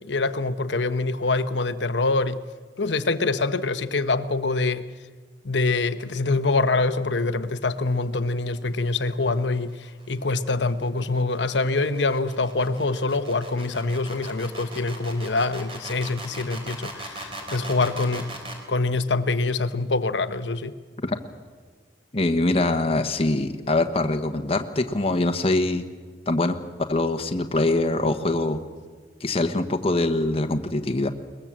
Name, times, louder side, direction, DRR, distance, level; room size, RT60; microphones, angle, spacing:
voice 1, 0.0-2.4 2.8-4.9 5.4-9.8 10.1-18.3 18.7-20.7, left 3 dB, 90° left, 11 dB, 1.1 m, -25 dB
sound 1, 9.4-18.6, right 2 dB, 30° right, 4.1 m, -39 dB
voice 2, 22.1-25.8 26.3-26.5 26.9-28.6 29.2-31.1, left 2 dB, 35° left, 5 dB, 1.2 m, -23 dB
22.0 x 21.0 x 7.5 m, 1.5 s
head